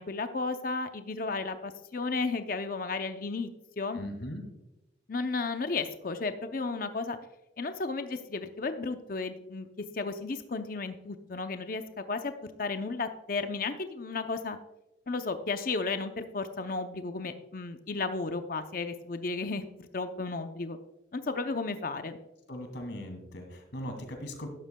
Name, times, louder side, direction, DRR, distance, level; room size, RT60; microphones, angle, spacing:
voice 1, 0.0-3.5 3.8-4.0 5.1-7.2 7.6-9.7 9.9-12.3 12.6-14.6 15.1-20.8 21.1-22.2, left 3 dB, 45° left, 8 dB, 0.6 m, -33 dB
voice 2, 3.9-4.4 22.5-24.5, equal, 70° left, 4 dB, 2.3 m, -39 dB
12.5 x 11.0 x 2.2 m, 0.95 s
head